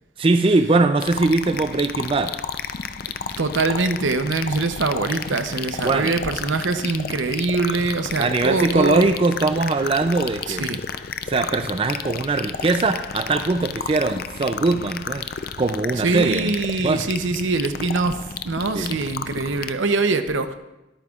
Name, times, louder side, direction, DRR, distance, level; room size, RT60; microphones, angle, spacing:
voice 1, 0.2-2.3 5.8-6.3 8.2-10.7 11.3-15.3 15.6-16.5 16.8-17.0 18.7-19.0, right 3 dB, 30° right, 8 dB, 0.3 m, -21 dB
sound 1, 1.0-19.7, left 6 dB, 50° left, 0.4 m, -32 dB
voice 2, 3.4-9.1 10.5-10.8 16.0-18.2 18.4-20.5, right 3 dB, 80° right, 9 dB, 0.8 m, -23 dB
21.5 x 9.0 x 2.4 m, 1.0 s
head